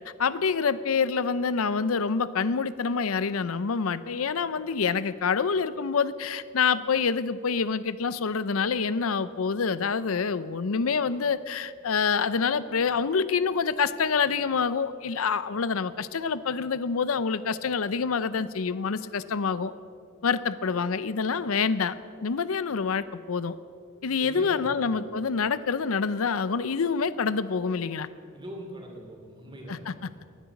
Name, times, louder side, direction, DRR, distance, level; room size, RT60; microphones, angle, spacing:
voice 1, 0.2-19.7 20.2-21.9 22.2-23.6 24.0-28.1 29.7-29.9, left 5 dB, 80° left, 15 dB, 0.6 m, -27 dB
voice 2, 24.2-24.9 28.3-30.2, right 1 dB, 20° right, 1 dB, 3.0 m, -42 dB
19.5 x 10.5 x 7.1 m, 2.3 s
head